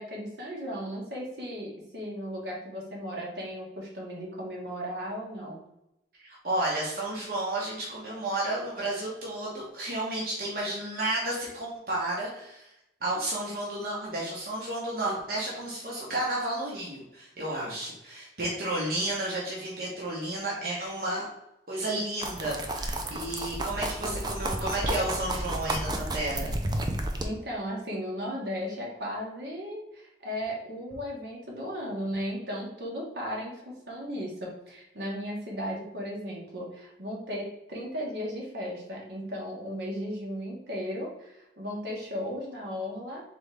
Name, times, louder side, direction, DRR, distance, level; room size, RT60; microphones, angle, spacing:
voice 1, 0.0-5.6 27.2-43.2, equal, 75° right, -3 dB, 1.4 m, -36 dB
voice 2, 6.2-12.7 13.0-21.3 21.7-26.5, right 1 dB, 55° right, -5 dB, 1.1 m, -32 dB
sound 1, 22.2-27.3, right 1 dB, 25° right, 0.4 m, -32 dB
4.1 x 3.5 x 3.4 m, 0.86 s
head